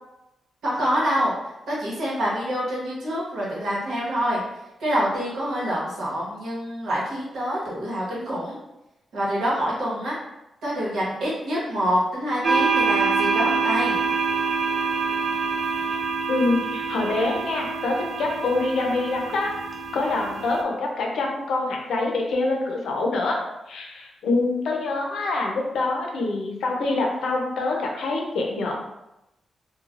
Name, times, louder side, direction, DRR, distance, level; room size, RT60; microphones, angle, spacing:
voice 1, 0.6-1.3 1.7-4.4 4.8-8.6 9.1-10.2 10.6-14.0, equal, 85° right, -6 dB, 1.1 m, -26 dB
sound 1, 12.4-20.6, right 4 dB, 45° right, 0.4 m, -25 dB
voice 2, 16.3-19.5 19.9-23.4 23.7-28.7, left 2 dB, 85° left, 0 dB, 0.6 m, -25 dB
3.2 x 2.3 x 2.4 m, 0.92 s
cardioid pair, 90°, 0 cm